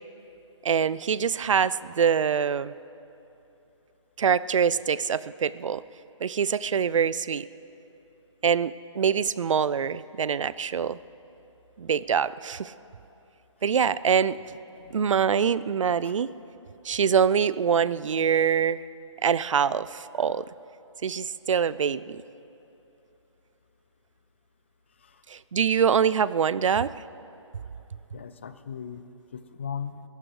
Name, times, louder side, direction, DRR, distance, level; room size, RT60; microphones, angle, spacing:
voice 1, 0.6-2.7 4.2-5.8 6.2-7.4 8.4-11.0 11.8-12.7 13.6-14.4 14.9-16.3 16.8-18.8 19.2-20.5 21.0-22.2 25.3-26.9, right 7 dB, 75° right, 18 dB, 0.4 m, -24 dB
voice 2, 28.1-29.0 29.3-30.0, left 7 dB, 25° left, 12 dB, 0.4 m, -38 dB
28.0 x 14.0 x 3.2 m, 2.9 s
hypercardioid pair, 165°, 16 cm